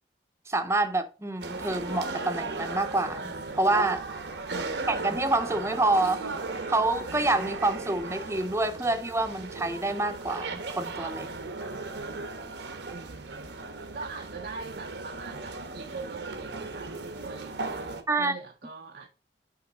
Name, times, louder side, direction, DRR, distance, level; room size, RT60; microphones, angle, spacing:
voice 1, 0.5-4.0 4.9-6.2 6.7-11.3 18.1-18.3, right 2 dB, 15° right, 0.7 m, -27 dB
sound 1, 1.4-18.0, right 3 dB, 75° right, 1.1 m, -36 dB
voice 2, 4.5-5.1 12.9-13.5 13.9-19.1, right 4 dB, 55° right, 0.6 m, -42 dB
8.4 x 3.4 x 4.8 m
head